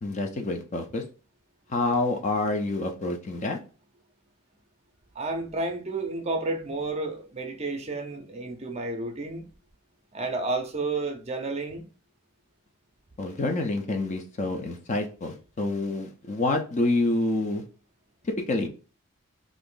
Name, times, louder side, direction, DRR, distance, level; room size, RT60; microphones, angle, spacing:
voice 1, 0.0-1.0 1.7-3.6 13.2-17.6 18.2-18.7, left 2 dB, 35° left, 0.5 m, -27 dB
voice 2, 5.1-9.4 10.1-11.9, right 3 dB, 30° right, 0.5 m, -31 dB
3.0 x 2.5 x 3.7 m
head